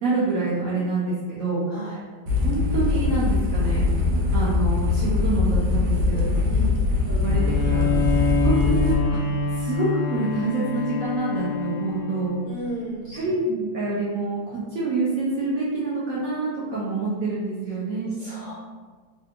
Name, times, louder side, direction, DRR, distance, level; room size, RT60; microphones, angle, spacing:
voice 1, 0.0-1.6 2.4-3.9 4.3-6.3 7.1-7.9 8.4-9.2 9.5-12.4 13.1-18.2, right 3 dB, 65° right, -7 dB, 0.8 m, -26 dB
voice 2, 1.7-2.0 6.1-6.7 8.1-8.3 12.4-13.2 18.2-18.5, right 1 dB, 40° left, -10 dB, 0.6 m, -36 dB
sound 1, 2.3-8.9, left 3 dB, 80° right, 1.4 m, -22 dB
Bowed string instrument, 7.2-12.7, left 4 dB, 75° left, 1.0 m, -26 dB
3.4 x 2.4 x 2.8 m, 1.4 s
omnidirectional pair, 2.1 m